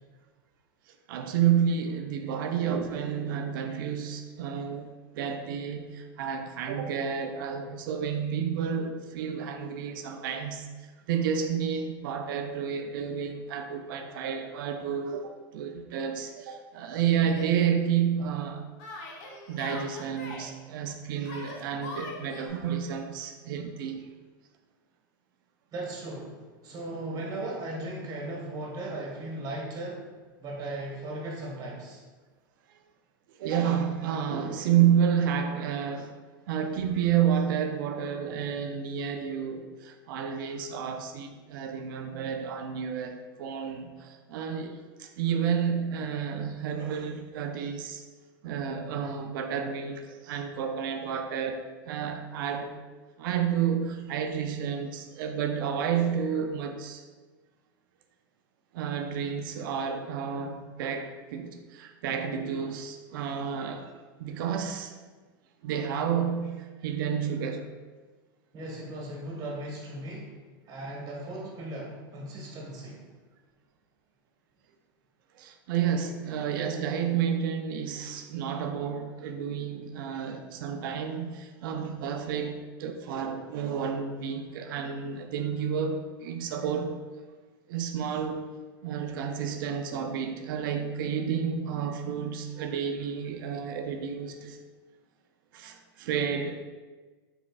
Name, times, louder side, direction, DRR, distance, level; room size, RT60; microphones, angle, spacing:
voice 1, 0.9-18.7 19.5-24.1 33.3-36.1 36.5-48.1 48.4-52.7 53.2-57.0 58.7-63.9 64.2-64.9 65.6-67.7 75.4-86.9 87.7-88.4 88.8-94.6 95.5-96.6, right 8 dB, 70° right, 6 dB, 0.4 m, -30 dB
Yell, 17.2-17.5 18.8-20.5 21.2-22.5, left 2 dB, 60° left, 0.9 m, -42 dB
voice 2, 25.7-30.1 30.4-32.0 68.5-70.3 70.7-73.1, right 1 dB, 35° right, -3 dB, 1.5 m, -37 dB
4.4 x 4.1 x 2.4 m, 1.3 s
supercardioid pair, 120°, 12 cm